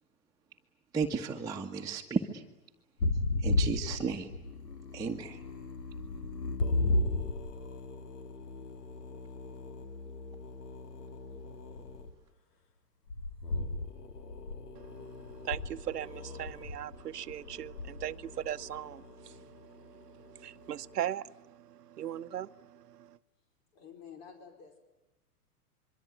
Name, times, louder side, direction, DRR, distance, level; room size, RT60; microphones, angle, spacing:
voice 1, 0.9-2.4 3.4-4.3 4.9-5.4, right 5 dB, 10° right, 1.5 m, -33 dB
sound 1, 3.0-12.1 13.1-20.7, left 2 dB, 85° left, 3.1 m, -36 dB
voice 2, 14.7-23.2, right 11 dB, 90° right, 0.9 m, -39 dB
voice 3, 23.7-24.8, left 7 dB, 55° left, 4.9 m, -50 dB
26.0 x 23.0 x 9.4 m
hypercardioid pair, 125°, 46 cm